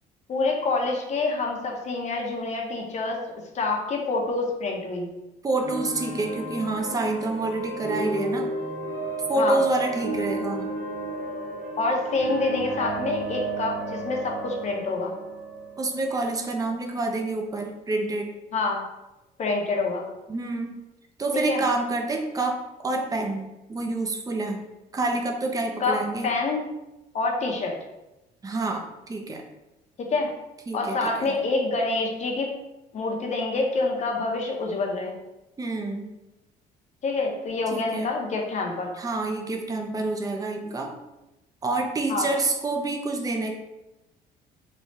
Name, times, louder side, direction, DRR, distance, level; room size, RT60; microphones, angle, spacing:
voice 1, 0.3-3.2 3.5-5.1 9.4-9.6 11.8-15.1 18.5-18.8 19.4-20.1 21.5-21.6 25.8-26.7 27.1-27.7 30.0-30.3 30.7-32.5 32.9-35.2 37.0-38.9 42.1-42.3, left 3 dB, 45° left, 1 dB, 0.8 m, -27 dB
voice 2, 5.4-8.5 9.3-10.7 15.8-18.3 20.3-20.8 21.2-24.6 24.9-26.3 28.4-29.4 30.7-31.4 35.6-36.1 37.7-38.1 39.0-40.9 41.6-43.5, right 2 dB, 20° right, 3 dB, 0.6 m, -28 dB
sound 1, 5.6-17.2, right 2 dB, 80° right, 1.2 m, -33 dB
3.2 x 2.3 x 4.1 m, 0.98 s
cardioid pair, 110°, 17 cm